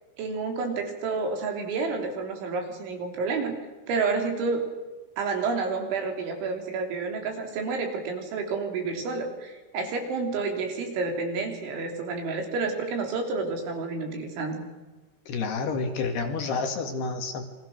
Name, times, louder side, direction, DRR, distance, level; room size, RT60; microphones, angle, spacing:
voice 1, 0.2-3.5 3.9-4.7 5.2-14.7, right 4 dB, 75° right, 4 dB, 5.7 m, -29 dB
voice 2, 15.3-17.4, left 4 dB, 60° left, 5 dB, 3.8 m, -29 dB
29.0 x 24.5 x 6.6 m, 1.2 s
omnidirectional pair, 5.5 m